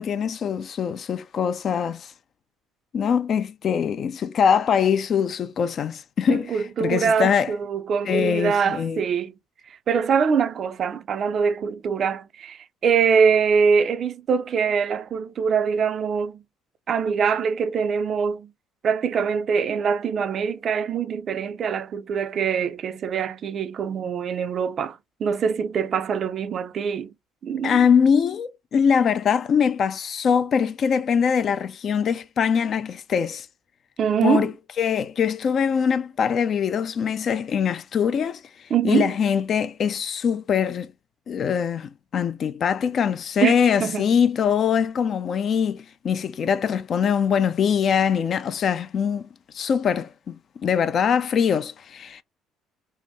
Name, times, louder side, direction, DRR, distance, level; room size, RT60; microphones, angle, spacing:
voice 1, 0.0-2.1 2.9-7.5 8.0-9.0 27.6-33.5 34.2-34.5 34.8-38.4 38.8-40.9 41.3-49.3 49.5-52.2, left 7 dB, 50° left, 0.3 m, -23 dB
voice 2, 6.5-9.3 9.9-16.4 16.9-18.5 18.8-27.1 27.4-27.9 34.0-34.5 38.7-39.1 43.4-44.1, right 6 dB, 50° right, 0.4 m, -23 dB
2.7 x 2.1 x 3.3 m
figure-of-eight pair, 50°, 0 cm